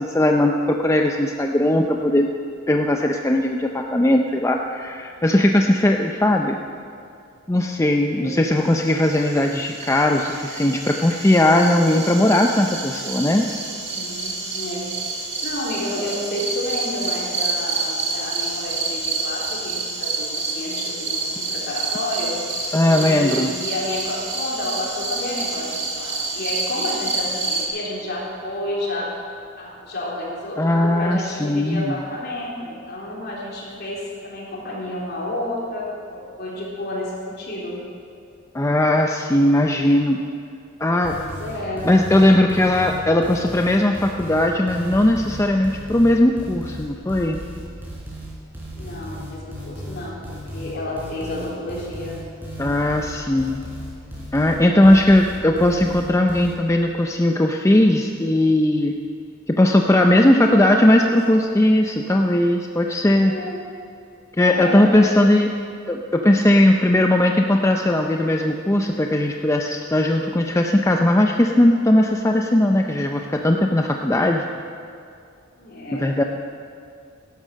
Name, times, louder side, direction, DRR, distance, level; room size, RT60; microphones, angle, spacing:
voice 1, 0.0-2.3 2.7-6.6 7.5-13.5 22.7-23.5 30.6-32.0 38.5-40.2 40.8-41.2 41.8-47.4 52.6-53.6 54.3-58.9 59.5-63.3 64.4-65.5 65.9-74.4 75.9-76.2, left 1 dB, 15° left, 3 dB, 0.5 m, -18 dB
voice 2, 5.6-5.9 8.1-8.4 13.7-14.9 15.4-22.5 22.8-29.1 29.5-37.8 41.1-41.9 48.8-52.2 54.4-54.9 60.0-61.2 63.3-63.6 64.4-65.2 75.6-76.1, left 1 dB, 55° left, -4 dB, 3.5 m, -31 dB
sound 1, 8.8-27.7, right 3 dB, 35° right, 1.9 m, -28 dB
sound 2, 41.0-56.5, equal, 10° right, 3.8 m, -35 dB
12.0 x 11.5 x 6.3 m, 2.5 s
head